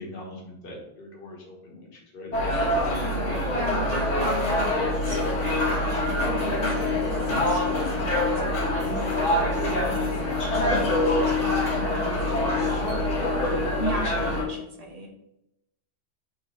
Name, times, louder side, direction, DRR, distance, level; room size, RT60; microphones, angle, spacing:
voice 1, 0.0-2.4, left 1 dB, 55° left, -1 dB, 1.4 m, -42 dB
sound 1, 2.3-14.4, equal, 90° left, 1.7 m, -25 dB
voice 2, 2.5-10.1 10.4-13.0 13.4-15.1, right 1 dB, 35° right, 0 dB, 1.2 m, -37 dB
sound 2, 4.7-14.6, left 11 dB, 70° left, 0.8 m, -32 dB
4.2 x 4.0 x 5.6 m, 0.85 s
omnidirectional pair, 1.2 m